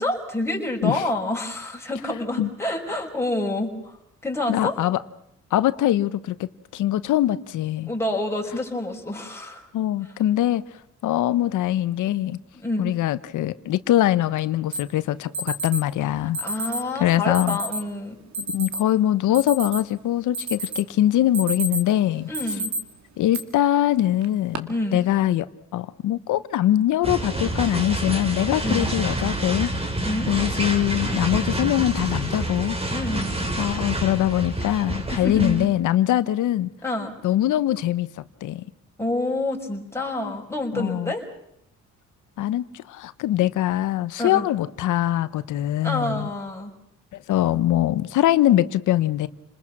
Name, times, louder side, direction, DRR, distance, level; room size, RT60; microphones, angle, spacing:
voice 1, 0.0-4.0 4.2-4.8 7.9-9.7 12.6-12.9 16.2-18.2 22.3-22.7 24.7-25.1 28.6-28.9 30.0-30.3 32.9-33.5 35.1-35.6 36.8-37.2 39.0-41.2 44.2-44.5 45.8-46.7, left 1 dB, 10° left, 5.4 m, -28 dB
voice 2, 4.5-5.0 5.5-7.9 9.7-10.6 11.0-12.4 12.8-16.4 17.0-17.6 18.4-22.3 23.2-25.5 25.7-29.7 30.3-32.8 33.6-36.7 37.2-38.1 38.4-38.6 40.7-41.1 42.4-46.3 47.3-49.3, left 13 dB, 80° left, 1.0 m, -22 dB
Alarm, 14.7-14.8 15.3-15.8 16.3-16.8 17.3-17.8 18.3-18.8 19.2-20.0 20.3-20.9 21.2-21.9 22.3-22.8 23.3-23.4 24.2-24.6, right 1 dB, 65° right, 2.3 m, -29 dB
sound 1, 27.0-35.7, right 1 dB, 20° right, 3.5 m, -28 dB
29.5 x 20.5 x 6.0 m
cardioid pair, 90°, 30 cm